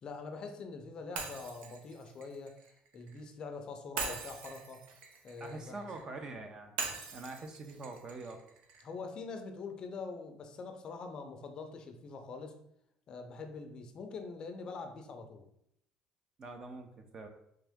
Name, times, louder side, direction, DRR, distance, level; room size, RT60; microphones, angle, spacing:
voice 1, 0.0-4.8 5.2-5.8 8.8-12.5 13.1-15.5, left 4 dB, 35° left, 5 dB, 0.5 m, -44 dB
Shatter, 1.2-3.2 4.0-6.1 6.8-8.9, right 5 dB, 85° right, 0.7 m, -42 dB
voice 2, 5.4-6.8 7.1-8.4 16.4-17.3, right 3 dB, 30° right, 5 dB, 0.5 m, -44 dB
3.6 x 3.3 x 3.5 m, 0.74 s
cardioid pair, 155°, 2 cm